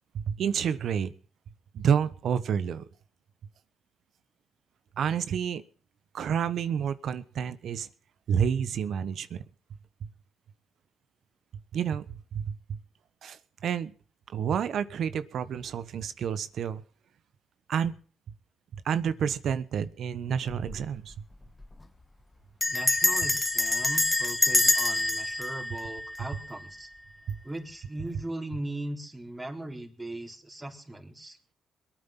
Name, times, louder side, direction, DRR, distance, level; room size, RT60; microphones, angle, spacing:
voice 1, 0.1-1.1 1.7-2.8 5.0-5.6 6.1-7.9 8.3-9.4 11.7-12.5 13.2-13.9 14.3-16.8 17.7-17.9 18.7-21.1 27.3-27.4, right 8 dB, 65° right, 14 dB, 1.1 m, -29 dB
Bell, 20.5-20.8 21.1-21.2 21.4-21.8 22.6-26.7, left 2 dB, 15° left, 1.5 m, -26 dB
voice 2, 22.7-26.9 27.4-31.4, right 1 dB, 10° right, 3 dB, 3.8 m, -39 dB
22.5 x 9.3 x 5.9 m, 0.42 s
cardioid pair, 90°, 0 cm